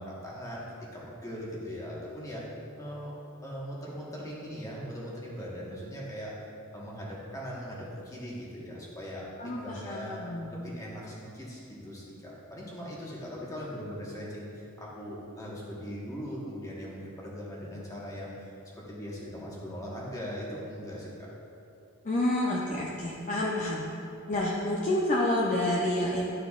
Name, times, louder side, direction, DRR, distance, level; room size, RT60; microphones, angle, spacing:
voice 1, 0.0-2.4 2.8-3.1 3.4-6.5 6.7-10.2 10.5-21.3, equal, 15° left, -5 dB, 1.2 m, -40 dB
voice 2, 9.4-10.5 22.0-23.8 24.3-26.3, left 1 dB, 35° left, -4 dB, 0.6 m, -29 dB
12.0 x 4.6 x 2.4 m, 2.7 s
head